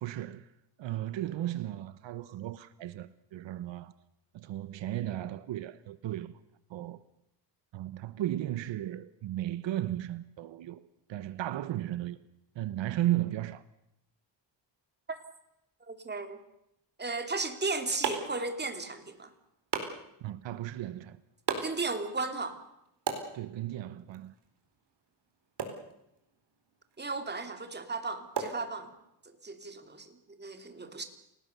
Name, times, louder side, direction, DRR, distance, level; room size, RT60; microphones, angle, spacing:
voice 1, 0.0-0.5 0.8-3.9 4.3-6.3 6.7-7.0 7.7-12.2 12.5-13.6 20.2-21.2 23.3-24.3, right 13 dB, 80° right, 1.1 m, -35 dB
voice 2, 15.9-16.4 17.0-19.3 21.6-22.6 27.0-28.9 29.4-30.1 30.4-31.0, right 3 dB, 25° right, 3.0 m, -35 dB
sound 1, 17.4-29.3, right 6 dB, 65° right, 4.4 m, -41 dB
29.0 x 19.0 x 6.9 m
cardioid pair, 120°, 44 cm